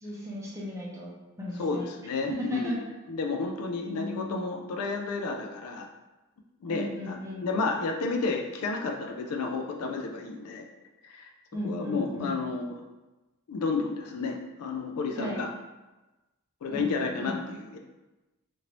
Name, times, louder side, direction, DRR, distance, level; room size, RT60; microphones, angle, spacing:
voice 1, 0.0-1.1 1.4-1.8 2.3-2.8 3.8-4.6 6.7-7.4 11.5-12.3 15.2-15.4 16.7-17.4, left 1 dB, 15° right, -4 dB, 0.7 m, -35 dB
voice 2, 1.6-5.9 6.6-10.6 11.0-11.3 11.6-12.8 13.5-15.5 16.6-17.8, left 4 dB, 90° left, 2 dB, 0.4 m, -31 dB
2.9 x 2.6 x 2.9 m, 1.1 s
head